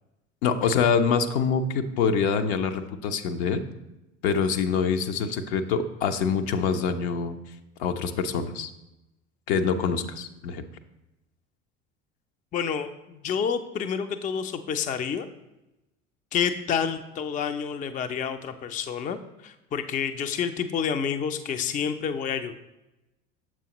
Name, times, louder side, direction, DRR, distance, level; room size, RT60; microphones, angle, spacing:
voice 1, 0.4-3.6 4.2-7.4 7.8-8.7 9.5-10.6, left 6 dB, 65° left, 8 dB, 0.6 m, -25 dB
voice 2, 12.5-15.3 16.3-22.5, left 7 dB, 25° left, 9 dB, 0.4 m, -29 dB
6.9 x 6.0 x 2.9 m, 0.95 s
hypercardioid pair, 70°, 36 cm